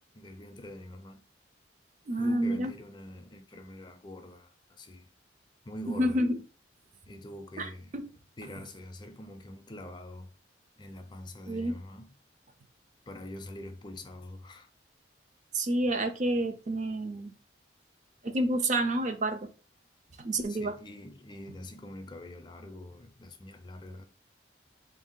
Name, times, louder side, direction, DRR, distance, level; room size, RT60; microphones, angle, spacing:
voice 1, 0.1-1.2 2.2-5.1 5.7-6.2 7.1-7.9 8.4-10.3 10.8-12.1 13.1-14.7 20.5-24.1, left 1 dB, 25° left, 0.4 m, -44 dB
voice 2, 2.1-2.7 5.9-6.4 7.6-7.7 11.5-11.8 15.5-17.3 18.2-19.5 20.2-20.8, right 1 dB, 40° right, 0.5 m, -29 dB
3.7 x 2.6 x 3.7 m
head